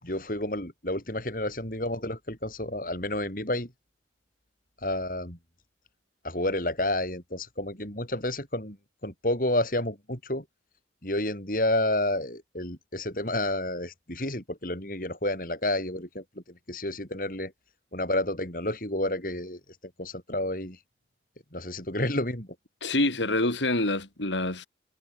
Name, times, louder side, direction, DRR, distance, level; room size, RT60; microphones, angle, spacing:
voice 1, 0.0-3.7 4.8-5.4 6.2-8.8 9.0-10.4 11.0-17.5 17.9-19.6 20.0-20.8 21.5-22.5, left 1 dB, 50° left, 6.4 m, -30 dB
voice 2, 22.8-24.7, left 2 dB, 85° left, 5.4 m, -26 dB
head